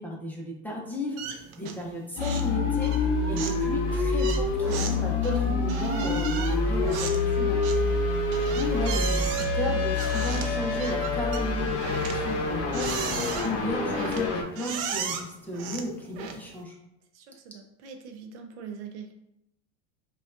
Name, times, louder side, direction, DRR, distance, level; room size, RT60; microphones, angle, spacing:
voice 1, 0.0-8.0 8.4-16.8, left 1 dB, 5° left, -2 dB, 0.6 m, -34 dB
sound 1, 1.2-1.9 2.2-2.5 2.8-16.6, right 7 dB, 55° right, 0.5 m, -37 dB
sound 2, 2.2-14.4, left 3 dB, 45° left, 0.8 m, -26 dB
voice 2, 17.1-19.1, right 6 dB, 90° right, 5 dB, 0.7 m, -43 dB
5.0 x 2.4 x 2.5 m, 0.81 s
supercardioid pair, 130°, 33 cm